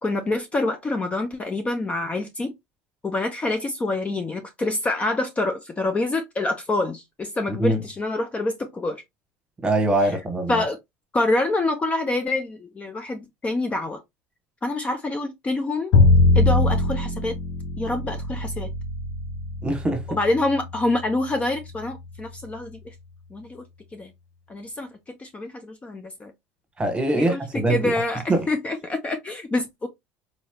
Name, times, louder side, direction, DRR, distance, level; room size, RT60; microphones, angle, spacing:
voice 1, 0.0-2.5 3.0-9.0 10.5-10.8 11.1-14.0 14.6-15.9 16.3-17.4 17.8-18.7 20.1-22.9 23.3-23.6 23.9-24.1 24.5-26.3 27.1-27.4 27.7-29.9, left 2 dB, 20° left, 0.6 m, -26 dB
voice 2, 9.6-10.6 19.6-20.1 26.8-27.8 28.3-28.5, right 1 dB, 15° right, 1.3 m, -22 dB
Bowed string instrument, 15.9-22.0, left 2 dB, 60° left, 0.9 m, -22 dB
4.0 x 3.1 x 2.2 m
supercardioid pair, 105°, 6 cm